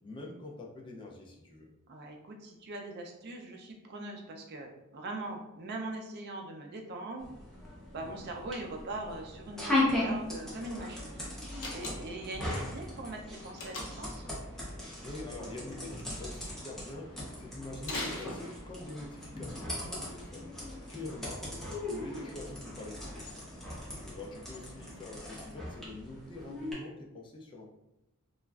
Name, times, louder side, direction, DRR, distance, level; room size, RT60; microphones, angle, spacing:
voice 1, 0.0-1.7 15.0-21.5 21.9-23.3 24.0-27.7, left 2 dB, 20° left, 0 dB, 0.4 m, -45 dB
voice 2, 1.9-7.3 7.9-11.2 11.7-14.2 19.8-20.1 23.9-24.0, right 2 dB, 50° right, 2 dB, 0.4 m, -41 dB
sound 1, 7.2-26.7, left 1 dB, ahead, 0.7 m, -38 dB
sound 2, 10.5-25.2, left 1 dB, 90° left, 1.1 m, -57 dB
Slam, 11.5-12.3 13.6-14.2 17.8-18.9, left 2 dB, 60° left, 0.6 m, -39 dB
3.0 x 2.4 x 2.3 m, 0.93 s
head